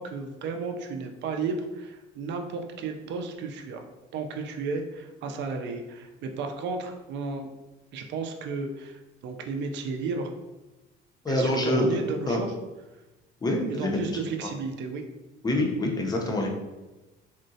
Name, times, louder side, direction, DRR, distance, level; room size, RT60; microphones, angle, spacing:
voice 1, 0.0-3.8 4.1-7.5 7.9-10.3 11.3-12.5 13.7-15.0, right 4 dB, 60° right, 4 dB, 0.4 m, -33 dB
voice 2, 11.2-11.9 12.3-12.4 13.4-14.0 15.4-16.5, left 1 dB, 20° left, 1 dB, 0.6 m, -25 dB
3.7 x 2.1 x 2.6 m, 1.1 s
cardioid pair, 110°, 21 cm